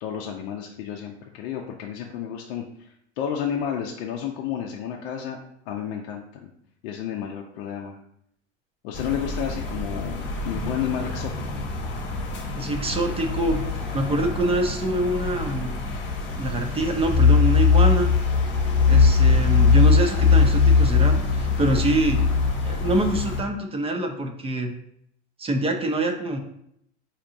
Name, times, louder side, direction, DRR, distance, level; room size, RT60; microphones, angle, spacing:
voice 1, 0.0-5.4 5.7-6.5 6.8-8.0 8.8-11.6, left 8 dB, 70° left, 0 dB, 0.6 m, -31 dB
sound 1, 8.9-23.4, left 5 dB, 35° left, 1.0 m, -21 dB
voice 2, 12.6-13.6 13.9-15.8 16.4-18.1 18.9-22.2 22.6-24.7 25.4-26.4, right 1 dB, 15° right, 5 dB, 0.5 m, -25 dB
4.5 x 2.8 x 2.6 m, 0.72 s
hypercardioid pair, 100°, 34 cm